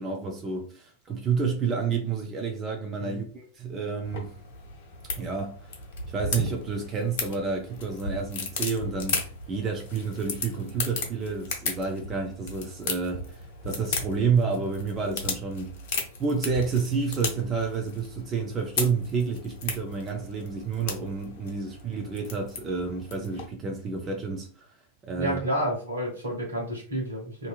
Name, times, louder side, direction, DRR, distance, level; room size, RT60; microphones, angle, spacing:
voice 1, 0.0-4.3 5.2-5.6 6.1-15.8 16.2-24.7 25.0-25.4, right 5 dB, 25° right, 0.5 m, -30 dB
sound 1, 4.0-23.5, left 3 dB, 55° left, 0.7 m, -36 dB
voice 2, 25.2-27.5, equal, 75° right, 1.0 m, -30 dB
2.6 x 2.6 x 2.4 m
figure-of-eight pair, 90°, 0 cm